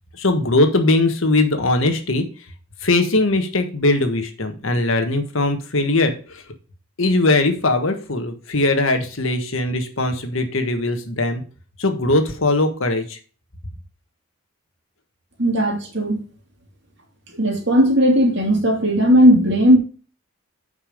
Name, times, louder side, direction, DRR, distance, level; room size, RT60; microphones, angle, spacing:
voice 1, 0.1-2.2 2.8-6.4 7.0-11.4 11.8-13.2, left 2 dB, 70° left, 1.5 m, -20 dB
voice 2, 15.4-16.2 17.4-19.8, equal, 55° right, 2.8 m, -16 dB
8.4 x 5.5 x 5.2 m
head